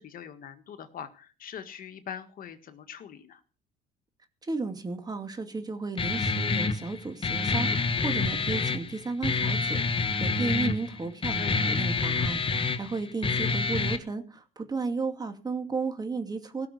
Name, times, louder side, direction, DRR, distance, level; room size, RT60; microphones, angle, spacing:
voice 1, 0.0-3.4 11.3-11.7, left 8 dB, 55° left, 9 dB, 1.7 m, -42 dB
voice 2, 4.4-16.7, right 4 dB, 25° right, 7 dB, 2.4 m, -34 dB
Guitar, 6.0-14.0, left 4 dB, 30° left, 1.4 m, -27 dB
17.5 x 6.1 x 8.1 m, 0.37 s
cardioid pair, 110°, 17 cm